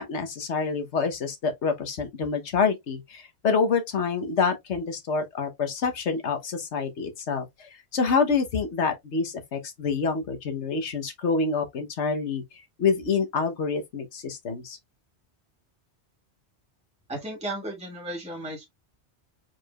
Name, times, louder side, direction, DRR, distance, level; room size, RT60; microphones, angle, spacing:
voice 1, 0.0-12.4 12.8-14.8, left 5 dB, 75° left, 1.4 m, -27 dB
voice 2, 17.1-18.6, right 1 dB, 5° right, 1.6 m, -34 dB
4.7 x 4.6 x 2.4 m
omnidirectional pair, 1.2 m